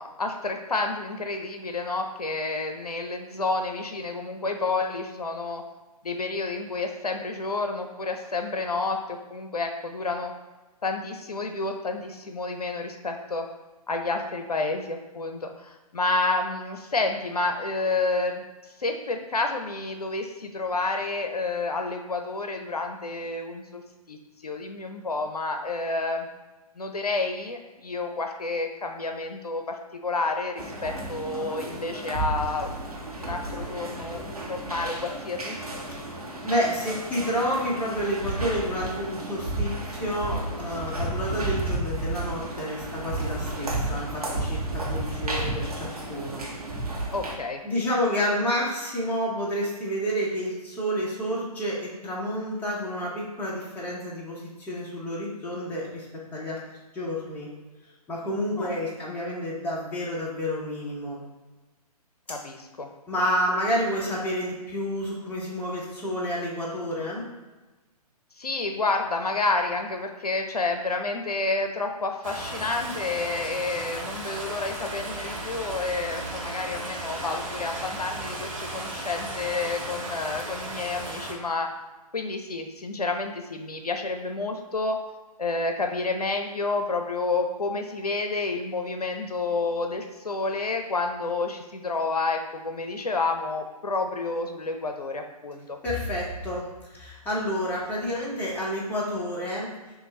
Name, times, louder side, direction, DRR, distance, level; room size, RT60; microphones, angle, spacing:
voice 1, 0.0-5.6 6.0-10.3 10.8-13.5 13.9-18.4 18.8-23.8 24.1-24.2 24.4-26.3 26.8-29.8 30.0-32.7 33.2-35.6 47.1-47.6 58.6-58.7 62.3-62.9 68.4-81.7 82.1-85.0 85.4-95.8, left 3 dB, 75° left, 4 dB, 0.6 m, -29 dB
sound 1, 30.6-47.3, right 2 dB, 70° right, 1.2 m, -32 dB
voice 2, 36.4-46.5 47.6-56.1 56.3-56.6 56.9-57.5 58.1-61.2 63.1-67.3 95.8-99.7, equal, 10° left, -6 dB, 0.9 m, -29 dB
sound 2, 72.2-81.3, right 1 dB, 55° right, 1.3 m, -35 dB
6.3 x 2.6 x 3.2 m, 1.2 s
figure-of-eight pair, 125°, 20 cm